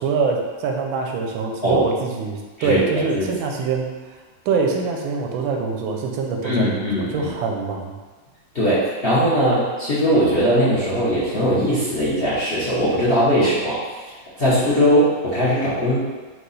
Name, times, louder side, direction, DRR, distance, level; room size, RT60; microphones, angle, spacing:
voice 1, 0.0-4.2 4.4-8.0, right 4 dB, 85° right, 2 dB, 1.4 m, -24 dB
voice 2, 6.4-7.3 8.5-13.8 14.4-16.0, equal, 45° left, -10 dB, 0.8 m, -19 dB
4.7 x 2.3 x 4.0 m, 1.3 s
omnidirectional pair, 2.1 m